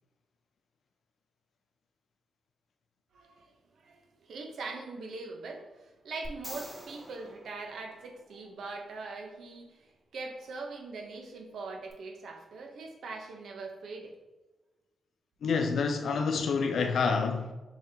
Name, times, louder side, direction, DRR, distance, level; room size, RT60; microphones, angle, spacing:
voice 1, 3.1-14.1 15.8-15.9 16.3-16.5, right 3 dB, 75° right, 0.7 m, -42 dB
sound 1, 6.2-8.5 11.9-12.0, right 1 dB, 15° right, 1.4 m, -46 dB
voice 2, 15.4-17.5, left 5 dB, 75° left, 0.3 m, -28 dB
5.3 x 3.5 x 2.8 m
supercardioid pair, 55°, 0 cm